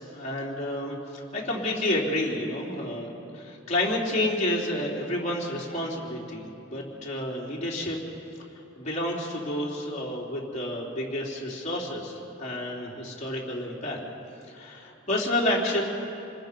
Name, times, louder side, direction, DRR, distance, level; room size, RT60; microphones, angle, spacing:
voice 1, 0.0-8.0 8.8-14.0 14.5-15.8, left 1 dB, 35° left, -4 dB, 3.6 m, -30 dB
28.0 x 20.5 x 5.3 m, 2.8 s
head